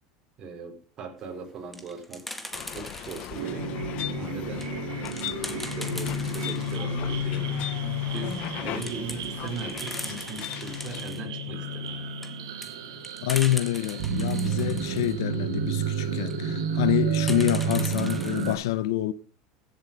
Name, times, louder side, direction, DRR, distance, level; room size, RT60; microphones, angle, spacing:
voice 1, 0.4-2.3 2.7-3.7 4.1-7.6 8.1-12.2, right 4 dB, 40° right, 4.7 m, -39 dB
sound 1, 1.4-3.5 4.0-6.8 7.2-7.3 7.5-7.6 8.0-8.5 8.8-11.2 11.9-15.1 16.1-16.4 17.1-18.5, left 1 dB, 5° left, 1.9 m, -40 dB
sound 2, 2.5-11.0, left 13 dB, 55° left, 1.1 m, -38 dB
sound 3, 3.3-18.5, right 3 dB, 90° right, 2.5 m, -31 dB
voice 2, 13.2-19.1, left 14 dB, 85° left, 0.9 m, -27 dB
16.0 x 7.7 x 5.3 m
supercardioid pair, 120°, 2 cm